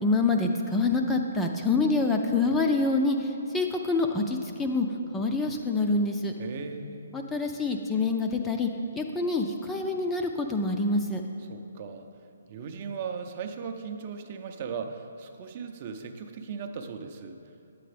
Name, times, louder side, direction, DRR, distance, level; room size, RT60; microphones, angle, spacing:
voice 1, 0.0-3.3 3.5-4.9 5.1-6.3 7.1-8.7 9.0-11.2, left 3 dB, 10° left, 3 dB, 0.5 m, -26 dB
voice 2, 6.4-7.1 11.4-12.1 12.5-17.4, right 5 dB, 40° right, 5 dB, 0.6 m, -37 dB
9.2 x 7.6 x 3.4 m, 2.7 s
figure-of-eight pair, 135°, 0 cm